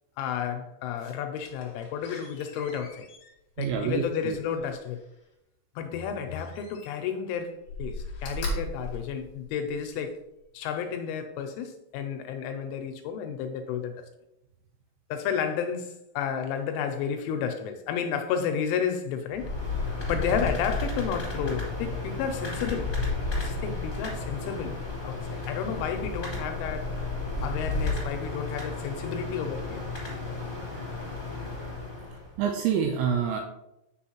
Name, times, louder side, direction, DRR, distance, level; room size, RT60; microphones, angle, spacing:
voice 1, 0.2-3.1 3.6-5.0 5.8-10.2 10.5-14.1 15.1-19.5 20.1-23.0 23.4-24.8 25.0-26.9 27.4-29.8, left 7 dB, 85° left, 2.9 m, -32 dB
Slam, 1.3-5.2 6.3-7.2 7.6-9.9 10.4-10.5, left 1 dB, 65° left, 1.9 m, -39 dB
voice 2, 3.6-4.4 32.4-33.4, right 7 dB, 85° right, 2.7 m, -27 dB
sound 1, 19.3-32.3, left 3 dB, 20° left, 1.2 m, -32 dB
7.7 x 6.3 x 2.9 m
omnidirectional pair, 5.9 m